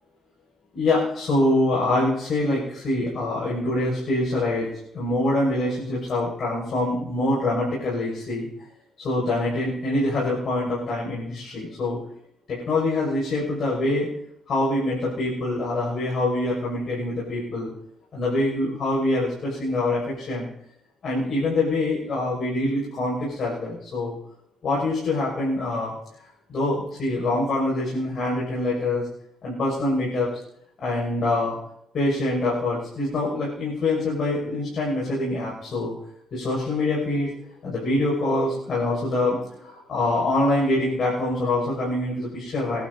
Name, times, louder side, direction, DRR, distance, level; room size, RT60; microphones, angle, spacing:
voice 1, 0.7-4.7 4.9-8.5 9.0-12.0 12.5-14.1 14.5-17.7 18.1-20.5 21.0-24.2 24.6-25.9 26.5-29.1 29.4-30.3 30.8-31.6 31.9-35.9 36.3-37.3 37.6-42.9, left 2 dB, 55° left, -5 dB, 6.8 m, -25 dB
27.0 x 11.5 x 4.3 m, 0.74 s
cardioid pair, 90°, 0 cm